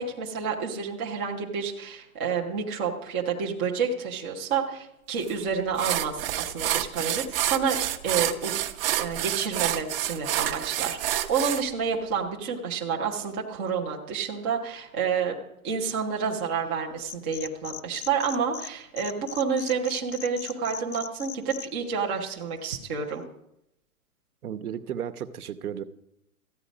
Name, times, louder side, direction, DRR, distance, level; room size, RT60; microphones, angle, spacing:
voice 1, 0.0-7.8 8.0-8.6 9.0-15.3 15.6-23.2, right 6 dB, 10° right, 0.3 m, -29 dB
sound 1, 5.3-5.4 5.8-11.6, right 12 dB, 40° right, 0.7 m, -28 dB
sound 2, 17.0-18.7 19.0-21.7, left 12 dB, 60° left, 1.0 m, -39 dB
voice 2, 24.4-25.8, right 9 dB, 75° right, 1.0 m, -34 dB
14.0 x 8.8 x 5.0 m
hypercardioid pair, 140°, 44 cm